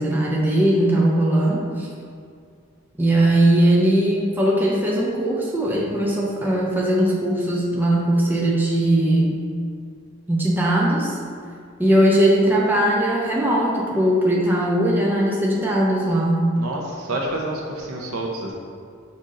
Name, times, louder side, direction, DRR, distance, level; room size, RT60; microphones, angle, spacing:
voice 1, 0.0-1.9 3.0-9.4 10.3-11.1 11.8-16.4, right 1 dB, 10° right, -4 dB, 0.4 m, -19 dB
voice 2, 16.6-18.5, right 1 dB, 80° right, -1 dB, 0.7 m, -28 dB
5.5 x 2.6 x 3.7 m, 2.2 s
head